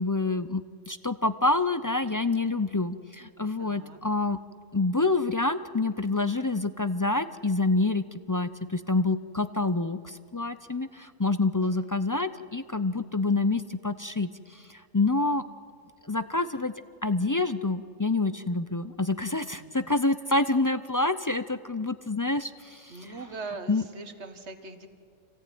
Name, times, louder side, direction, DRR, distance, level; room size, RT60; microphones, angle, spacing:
voice 1, 0.0-4.4 4.7-15.4 16.0-16.7 17.0-23.2 23.7-23.9, left 3 dB, 25° left, 12 dB, 0.4 m, -27 dB
voice 2, 3.6-4.0 11.6-11.9 19.6-19.9 22.9-24.9, right 3 dB, 65° right, 8 dB, 1.9 m, -41 dB
26.0 x 17.0 x 9.4 m, 2.3 s
omnidirectional pair, 1.2 m